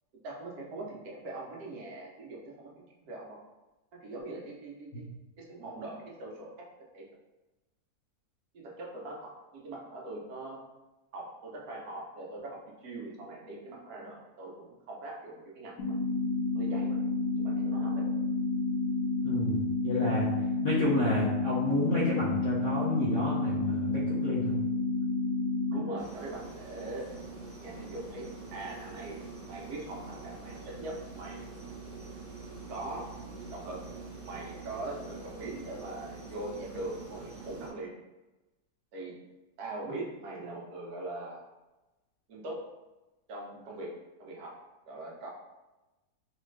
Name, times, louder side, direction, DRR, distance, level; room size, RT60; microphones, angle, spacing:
voice 1, 0.2-3.4 4.0-5.1 5.4-6.5 6.9-7.0 8.5-10.6 11.1-15.9 16.5-17.0 17.3-18.0 25.7-27.1 27.6-29.2 29.5-31.5 32.7-33.1 33.5-33.8 34.1-37.9 38.9-39.2 39.6-41.4 42.3-42.6 43.3-43.9 44.2-44.6 44.8-45.3, right 2 dB, 70° right, -3 dB, 1.4 m, -41 dB
sound 1, 15.8-25.8, left 3 dB, 85° left, 1.6 m, -30 dB
voice 2, 19.2-20.3 20.6-24.6, left 1 dB, 55° left, -8 dB, 1.2 m, -30 dB
sound 2, 26.0-37.7, right 4 dB, 40° right, 1.1 m, -45 dB
3.6 x 3.3 x 3.2 m, 1.1 s
omnidirectional pair, 1.7 m